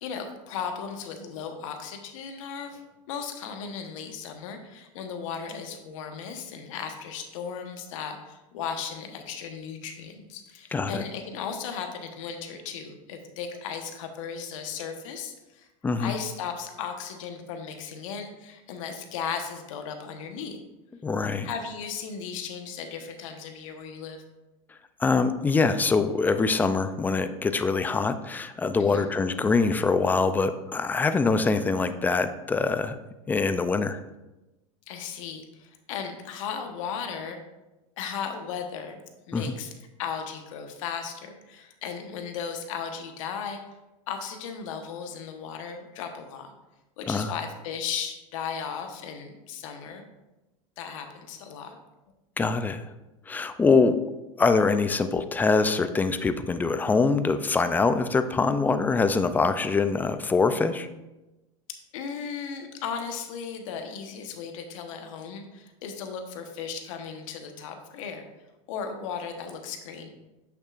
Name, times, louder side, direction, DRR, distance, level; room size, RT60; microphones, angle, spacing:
voice 1, 0.0-15.7 16.0-20.6 21.4-24.2 28.8-29.1 34.9-37.4 38.0-39.0 39.3-39.7 40.0-43.6 44.1-46.5 47.0-50.0 50.8-51.8 61.9-68.2 68.7-70.1, left 6 dB, 70° left, 5 dB, 1.2 m, -36 dB
voice 2, 10.7-11.0 15.8-16.1 21.0-21.5 25.0-33.0 33.3-34.0 39.3-39.5 47.1-47.3 52.4-52.8 53.3-54.0 54.4-60.9, left 4 dB, 10° left, 10 dB, 0.3 m, -24 dB
8.5 x 6.6 x 2.5 m, 1.0 s
supercardioid pair, 130°, 17 cm